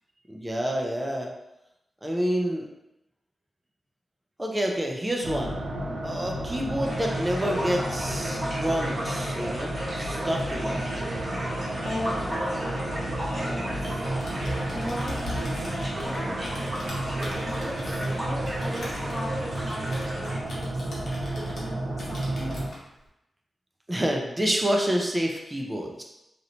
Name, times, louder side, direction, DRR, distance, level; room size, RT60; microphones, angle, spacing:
voice 1, 0.3-1.3 2.0-2.7 4.4-5.6 6.0-11.1 14.2-14.4 23.9-26.0, equal, 20° right, 0 dB, 0.6 m, -28 dB
sound 1, 5.2-22.7, right 1 dB, 65° right, 0.6 m, -32 dB
sound 2, 6.8-20.4, equal, 45° right, 1.1 m, -35 dB
voice 2, 11.8-12.9 13.2-14.1 14.7-16.7 17.0-20.8 21.3-22.6, left 1 dB, 25° left, -4 dB, 1.0 m, -38 dB
Typing, 14.1-21.7 22.0-22.8, left 1 dB, 75° left, 0.9 m, -41 dB
3.0 x 2.9 x 2.6 m, 0.89 s
cardioid pair, 65°, 0 cm